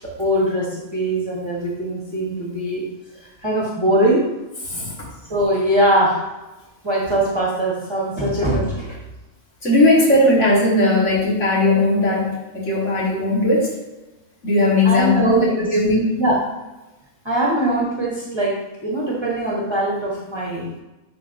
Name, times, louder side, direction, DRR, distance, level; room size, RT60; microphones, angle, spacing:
voice 1, 0.2-2.8 3.4-4.2 5.3-6.2 6.8-9.0 14.8-15.7 16.2-16.4 17.2-20.7, right 1 dB, 20° right, -5 dB, 1.3 m, -21 dB
voice 2, 9.6-13.7 14.4-16.2, left 2 dB, 65° left, -5 dB, 2.2 m, -18 dB
10.0 x 4.0 x 2.7 m, 1.1 s
omnidirectional pair, 1.4 m